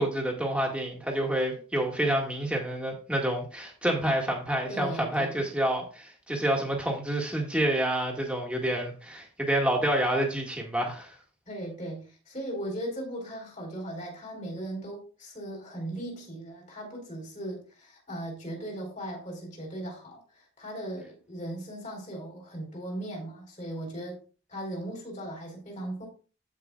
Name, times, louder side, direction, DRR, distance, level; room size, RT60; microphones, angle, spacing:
voice 1, 0.0-11.1, right 1 dB, 5° right, 1.8 m, -28 dB
voice 2, 4.7-5.5 11.5-20.2 20.6-24.2 24.5-26.1, right 1 dB, 35° left, 3.8 m, -38 dB
15.5 x 5.3 x 2.4 m
head